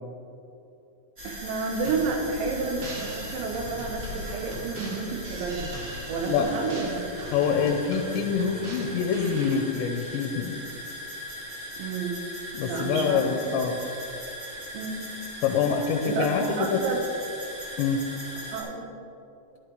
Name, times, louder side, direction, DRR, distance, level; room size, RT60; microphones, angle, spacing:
sound 1, 1.2-18.6, equal, 30° right, 1.7 m, -39 dB
voice 1, 1.2-5.7 6.1-7.4 11.8-12.2 12.6-13.2 14.7-15.1 16.1-17.0 18.5-18.9, right 4 dB, 85° right, 1 dB, 3.6 m, -30 dB
sound 2, 1.8-9.6, right 2 dB, 60° right, 2.3 m, -41 dB
voice 2, 7.3-10.6 12.5-13.8 15.4-16.8 17.8-18.0, left 6 dB, 85° left, 2 dB, 2.9 m, -25 dB
12.0 x 11.0 x 3.2 m, 2.7 s
omnidirectional pair, 5.2 m